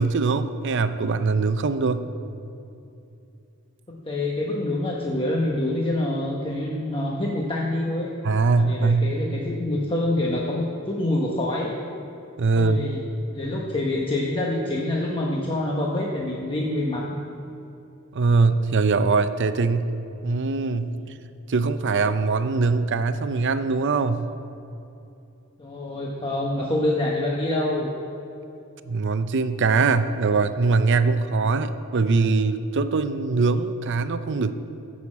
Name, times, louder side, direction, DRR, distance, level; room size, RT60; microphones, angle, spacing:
voice 1, 0.0-2.0 8.2-9.2 12.4-12.8 18.1-19.9 20.2-21.0 21.5-24.3 28.9-34.5, right 4 dB, 55° right, 11 dB, 0.6 m, -22 dB
voice 2, 3.9-8.2 8.6-11.7 12.5-13.0 13.3-17.1 20.8-21.1 25.6-27.9, left 1 dB, 25° left, -2 dB, 1.0 m, -26 dB
15.0 x 6.4 x 7.3 m, 2.8 s
head